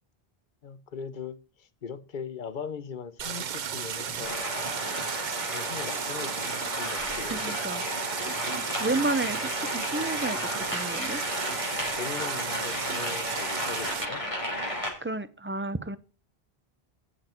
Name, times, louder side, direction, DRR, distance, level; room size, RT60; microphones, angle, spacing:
voice 1, 0.6-4.6 5.1-7.5 8.6-8.9 11.7-14.2, left 6 dB, 55° left, 1.0 m, -40 dB
Stream, 3.2-14.1, right 7 dB, 55° right, 0.8 m, -34 dB
Mechanisms, 3.6-7.7 8.1-9.6 10.3-11.6 11.9-12.3 12.6-13.1, right 4 dB, 90° right, 1.8 m, -45 dB
sound 1, 4.2-14.9, left 1 dB, 30° left, 4.5 m, -33 dB
voice 2, 7.3-7.8 8.8-11.2 15.0-16.0, right 2 dB, 15° right, 0.5 m, -31 dB
14.0 x 7.7 x 4.4 m
omnidirectional pair, 1.0 m